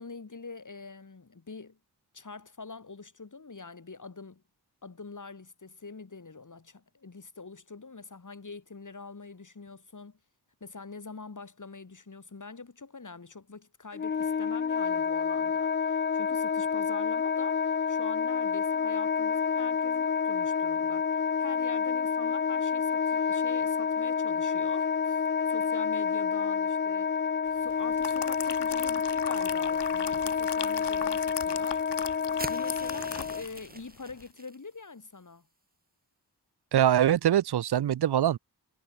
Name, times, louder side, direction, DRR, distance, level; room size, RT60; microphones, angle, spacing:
voice 1, 0.0-1.8 2.1-4.4 4.8-10.2 10.6-27.1 27.5-35.5, left 4 dB, 50° left, 2.5 m, -45 dB
Wind instrument woodwind instrument, 13.9-33.4, left 6 dB, 30° left, 0.4 m, -28 dB
sound 1, 27.7-33.7 34.1-34.2, left 8 dB, 85° left, 0.8 m, -39 dB
sound 2, 32.4-34.6, right 2 dB, 20° right, 2.1 m, -43 dB
voice 2, 36.7-38.4, right 11 dB, 75° right, 0.5 m, -23 dB
wide cardioid pair, 60°, 40 cm